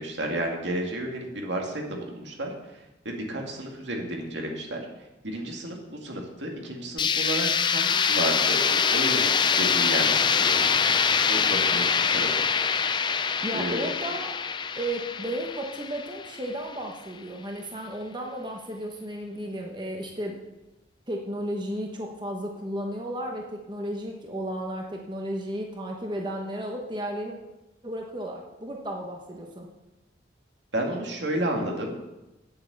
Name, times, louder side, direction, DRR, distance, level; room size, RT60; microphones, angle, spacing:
voice 1, 0.0-2.5 3.0-4.8 5.2-9.3 9.6-10.7 11.2-12.3 13.5-13.8 30.7-31.9, right 1 dB, 75° right, 1 dB, 2.3 m, -32 dB
sound 1, 7.0-16.7, left 6 dB, 25° left, 0.4 m, -24 dB
voice 2, 13.4-14.4 14.8-20.4 21.1-27.4 27.8-29.7, right 1 dB, 25° right, 1 dB, 1.1 m, -33 dB
9.5 x 7.9 x 7.1 m, 1.0 s
head